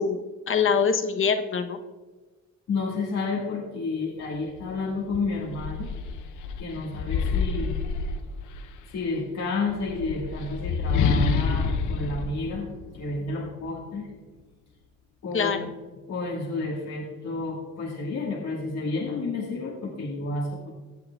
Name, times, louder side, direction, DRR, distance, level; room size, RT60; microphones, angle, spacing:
voice 1, 0.0-1.8 15.3-15.6, left 6 dB, 45° left, 7 dB, 0.9 m, -24 dB
voice 2, 2.7-5.9 6.6-7.8 8.9-12.7 12.9-14.1 15.2-15.7 16.1-20.7, left 3 dB, 60° left, -3 dB, 1.7 m, -30 dB
sound 1, 4.6-4.7 5.1-8.8 9.7-13.3, left 5 dB, 80° left, 0.7 m, -28 dB
16.0 x 8.4 x 2.3 m, 1.3 s
cardioid pair, 90°, 30 cm